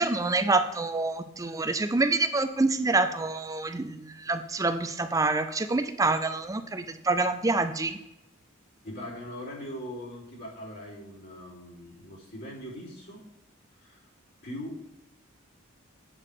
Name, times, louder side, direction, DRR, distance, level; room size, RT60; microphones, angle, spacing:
voice 1, 0.0-8.0, right 3 dB, 15° right, 9 dB, 0.5 m, -27 dB
voice 2, 8.8-13.2 13.8-14.0 14.4-14.8, equal, 55° left, -6 dB, 3.4 m, -40 dB
8.4 x 5.2 x 5.1 m, 0.87 s
head